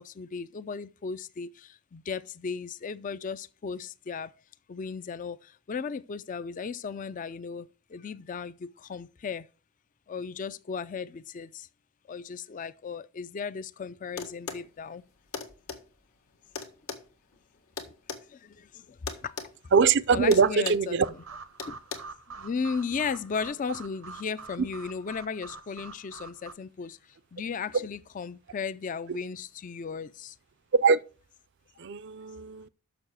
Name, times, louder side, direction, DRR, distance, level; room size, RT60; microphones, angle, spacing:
voice 1, 0.0-1.5 1.9-4.3 4.7-5.4 5.7-7.7 7.9-9.4 10.1-11.5 12.1-15.0 19.2-19.3 20.1-21.2 21.7-21.8 22.4-27.0 27.3-30.3, left 5 dB, 40° left, 0.4 m, -35 dB
sound 1, 14.2-14.7 15.3-15.8 16.5-18.2 19.1-19.5 19.8-20.0 20.3-20.9 21.6-22.0, left 5 dB, 85° left, 1.7 m, -37 dB
voice 2, 19.7-21.1 30.8-31.0 31.8-32.7, right 5 dB, 55° right, 0.5 m, -22 dB
sound 2, 21.0-26.5, right 5 dB, 85° right, 0.9 m, -45 dB
6.9 x 6.4 x 6.2 m
head